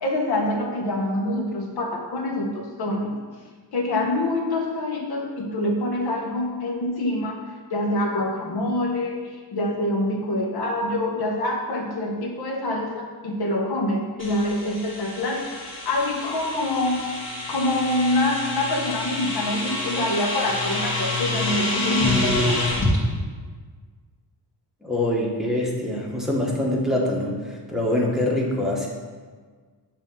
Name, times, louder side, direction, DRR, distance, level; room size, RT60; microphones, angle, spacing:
voice 1, 0.0-3.2 3.7-17.2 17.5-22.8, left 1 dB, 60° left, 0 dB, 1.2 m, -26 dB
sound 1, 14.2-23.0, left 2 dB, 25° left, 1.8 m, -28 dB
voice 2, 24.8-28.9, left 1 dB, ahead, -3 dB, 1.0 m, -24 dB
6.9 x 2.9 x 5.6 m, 1.5 s
cardioid pair, 125°, 44 cm